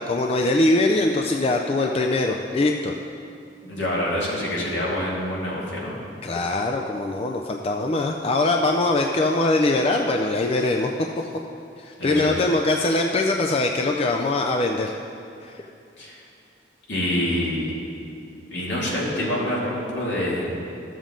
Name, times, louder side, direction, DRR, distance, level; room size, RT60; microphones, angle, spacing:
voice 1, 0.0-2.9 6.2-10.9 11.8-14.9 15.4-15.5, left 2 dB, 35° left, 2 dB, 0.4 m, -22 dB
voice 2, 3.6-6.0 12.0-12.4 16.0-16.2 16.9-17.7 18.5-20.6, left 1 dB, 75° left, -5 dB, 2.5 m, -26 dB
14.0 x 7.3 x 3.7 m, 2.6 s
head